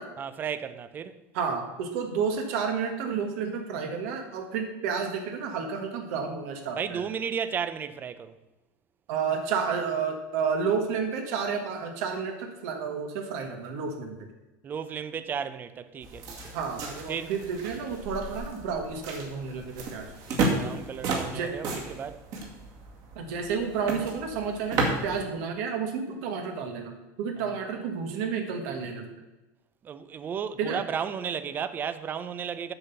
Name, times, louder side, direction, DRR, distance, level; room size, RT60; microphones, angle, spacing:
voice 1, 0.2-1.2 6.8-8.4 14.6-16.6 17.1-17.3 20.3-22.2 27.4-27.6 29.8-32.7, right 7 dB, 25° right, 0.5 m, -34 dB
voice 2, 1.3-7.0 9.1-14.1 16.5-20.1 21.3-21.5 23.1-26.9 27.2-29.1 30.6-30.8, right 6 dB, 65° right, 1.4 m, -31 dB
sound 1, 16.0-25.2, right 3 dB, 45° right, 2.1 m, -33 dB
7.8 x 5.9 x 6.8 m
supercardioid pair, 150°, 8 cm